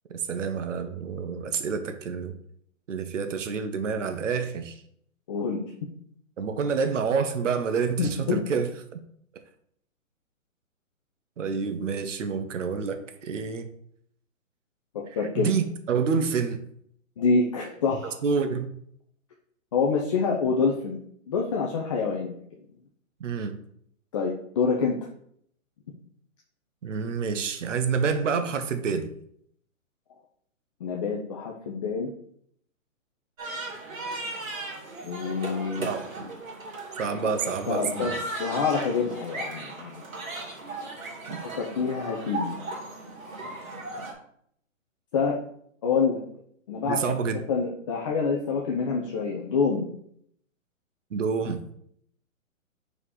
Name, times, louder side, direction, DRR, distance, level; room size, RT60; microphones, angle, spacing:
voice 1, 0.1-2.3 2.9-4.7 6.4-9.0 11.4-13.7 15.3-16.6 18.2-18.7 23.2-23.6 26.8-29.1 35.8-36.0 37.0-38.1 41.3-41.4 46.9-47.4 51.1-51.6, right 5 dB, 65° right, 8 dB, 0.9 m, -28 dB
voice 2, 5.3-5.6 8.0-8.4 15.2-15.5 17.2-18.2 19.7-21.0 21.3-22.4 24.1-25.0 30.8-32.1 35.0-35.9 37.2-40.0 41.4-42.6 45.1-45.4 45.8-46.2 46.7-49.9, left 5 dB, 25° left, -1 dB, 0.5 m, -27 dB
sound 1, 33.4-44.1, right 2 dB, 80° right, 2.7 m, -37 dB
4.9 x 4.3 x 4.9 m, 0.66 s
figure-of-eight pair, 135°, 41 cm